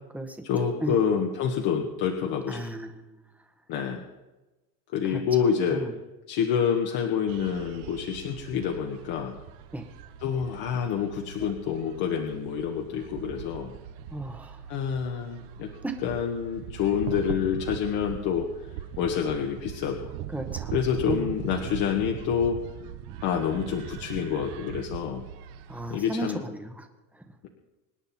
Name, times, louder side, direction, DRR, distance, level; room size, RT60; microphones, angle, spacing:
voice 1, 0.4-2.6 3.7-4.1 4.9-5.8 6.3-9.3 10.2-13.7 14.7-15.7 16.0-18.5 19.0-20.0 20.7-22.6 23.2-25.2 25.9-26.4, left 7 dB, 50° left, 2 dB, 1.8 m, -27 dB
voice 2, 2.5-2.9 5.1-5.2 5.7-5.9 9.7-9.8 14.1-14.6 15.8-15.9 20.3-20.7 21.1-21.3 25.7-26.9, right 1 dB, 5° right, 5 dB, 1.4 m, -34 dB
sound 1, 7.3-26.0, right 10 dB, 55° right, 1.3 m, -40 dB
26.0 x 10.5 x 4.4 m, 1.1 s
cardioid pair, 155°, 48 cm